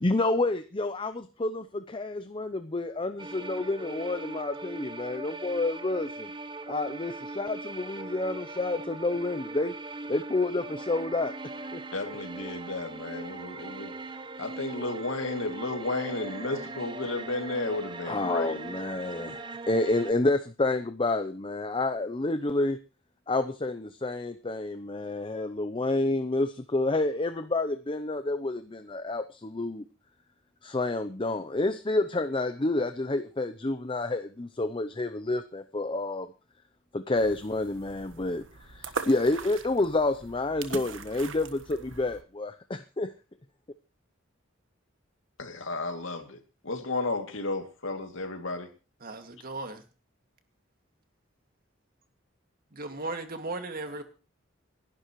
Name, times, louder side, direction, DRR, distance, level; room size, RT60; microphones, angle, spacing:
voice 1, 0.0-6.3 6.7-9.7 10.1-11.3 11.7-11.8 18.1-22.8 23.3-29.9 30.6-36.3 36.9-43.1, left 2 dB, 25° left, 10 dB, 0.7 m, -29 dB
sound 1, 3.2-20.1, right 3 dB, 25° right, 0.9 m, -40 dB
voice 2, 11.9-13.9 14.4-18.6 45.4-46.4 46.6-48.7, left 2 dB, 70° left, 4 dB, 2.6 m, -33 dB
sound 2, 37.2-42.2, right 4 dB, 70° right, 1.4 m, -41 dB
voice 3, 49.0-49.8 52.7-54.0, right 2 dB, 45° right, 6 dB, 2.2 m, -36 dB
28.5 x 11.5 x 3.1 m, 0.33 s
head